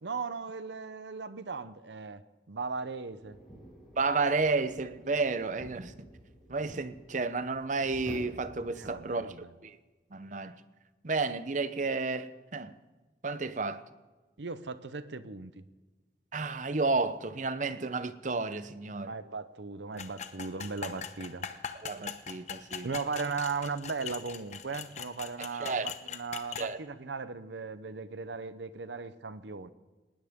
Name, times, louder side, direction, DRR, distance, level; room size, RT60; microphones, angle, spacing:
voice 1, 0.0-2.2 2.5-3.4 8.8-9.5 14.4-15.6 17.8-17.9 19.1-21.5 22.8-29.7, right 4 dB, 85° right, 0.8 m, -37 dB
sound 1, 3.2-8.9, equal, 5° left, 6.4 m, -50 dB
voice 2, 4.0-5.9 6.5-9.3 9.6-9.8 10.1-10.6 11.0-12.7 13.2-13.8 16.3-19.1 21.8-22.9 25.4-25.9 26.6-26.8, right 3 dB, 45° right, 0.8 m, -31 dB
sound 2, 20.0-26.7, left 7 dB, 40° left, 1.0 m, -41 dB
19.5 x 19.0 x 3.7 m
head